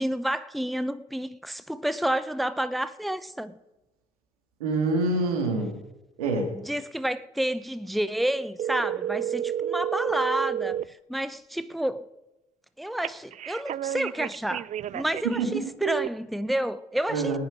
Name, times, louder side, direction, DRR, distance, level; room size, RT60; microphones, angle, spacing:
voice 1, 0.0-3.6 6.6-12.1 12.8-14.7 14.9-17.4, right 1 dB, ahead, 0.7 m, -30 dB
voice 2, 4.6-5.8 6.2-6.5 15.4-15.6 17.1-17.4, right 3 dB, 85° right, 2.4 m, -26 dB
sound 1, 8.6-10.8 13.0-15.4 15.8-16.1, right 10 dB, 40° right, 0.4 m, -30 dB
19.0 x 9.7 x 5.1 m
hypercardioid pair, 50°, 18 cm